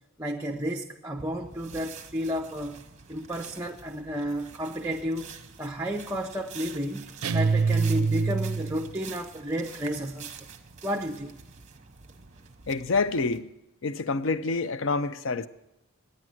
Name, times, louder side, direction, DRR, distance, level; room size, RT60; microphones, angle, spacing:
voice 1, 0.2-2.8 3.1-5.3 5.6-7.0 7.3-10.3 10.8-11.3, equal, 10° right, 0.5 m, -32 dB
sound 1, 1.2-13.4, right 6 dB, 30° right, 0.8 m, -47 dB
sound 2, 7.2-8.9, right 5 dB, 80° right, 0.4 m, -25 dB
voice 2, 12.7-13.5 13.8-15.5, left 3 dB, 60° left, 0.5 m, -27 dB
10.0 x 9.6 x 7.5 m
head